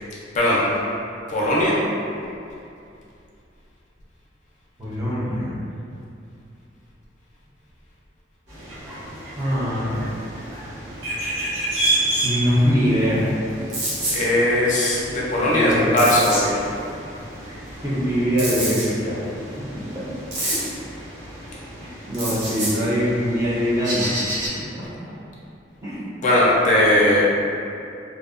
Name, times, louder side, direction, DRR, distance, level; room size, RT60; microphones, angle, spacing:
voice 1, 0.3-0.8 1.3-1.8 14.1-16.7 26.2-27.2, left 1 dB, 45° left, -6 dB, 0.4 m, -19 dB
voice 2, 4.8-5.6 9.4-10.1 12.2-13.3 15.5-15.9 17.5-17.6 17.8-19.2 19.9-20.0 20.4-20.7 21.8-24.2 25.0-25.1 25.8-26.1, equal, 20° right, -9 dB, 0.5 m, -23 dB
sound 1, 8.5-24.5, right 1 dB, 90° right, 1.1 m, -31 dB
sound 2, 13.7-14.2 16.0-16.4 18.4-18.9 20.3-20.7 22.1-22.7, right 1 dB, 70° right, 0.8 m, -26 dB
2.6 x 2.1 x 2.4 m, 2.6 s
head